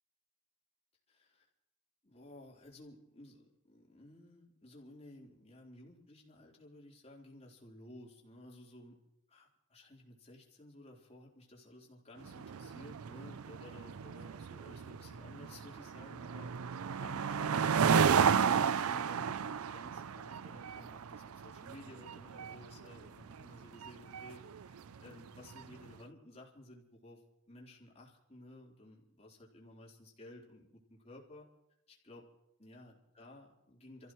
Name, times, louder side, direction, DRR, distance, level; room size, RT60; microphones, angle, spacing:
voice 1, 1.1-1.5 2.0-9.0 9.3-18.5 18.8-27.2 27.5-31.5 31.9-32.3 32.6-34.1, left 1 dB, 30° left, -2 dB, 3.8 m, -55 dB
sound 1, 12.2-25.8, right 7 dB, 75° right, 0.5 m, -33 dB
29.0 x 15.5 x 3.1 m, 0.83 s
head